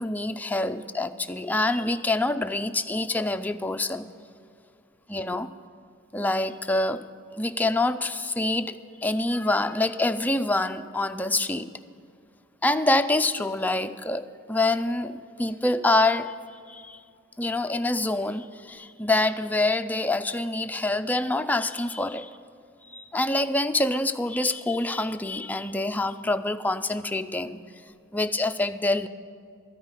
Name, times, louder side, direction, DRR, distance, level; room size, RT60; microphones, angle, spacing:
voice 1, 0.0-4.1 5.1-5.5 6.1-7.0 7.4-8.8 9.0-11.7 12.6-16.3 16.7-17.0 17.4-22.4 22.9-27.6 28.1-29.1, left 2 dB, 10° left, 8 dB, 0.3 m, -26 dB
13.0 x 5.5 x 8.9 m, 2.3 s
head